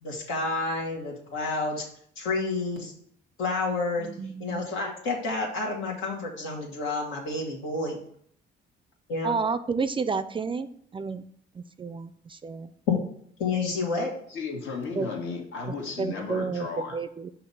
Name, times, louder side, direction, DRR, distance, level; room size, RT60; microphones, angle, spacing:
voice 1, 0.0-1.8 2.2-2.9 3.4-4.1 4.4-8.0 9.1-9.3 12.9-13.0 13.4-14.1, left 3 dB, 90° left, -1 dB, 1.6 m, -29 dB
voice 2, 4.0-4.6 9.2-11.3 11.5-12.7 15.0-15.1 16.0-16.7 16.9-17.3, right 5 dB, 25° right, 12 dB, 0.3 m, -31 dB
voice 3, 14.3-17.0, left 4 dB, 70° left, 1 dB, 1.5 m, -34 dB
5.9 x 2.9 x 5.5 m, 0.64 s
cardioid pair, 90°, 20 cm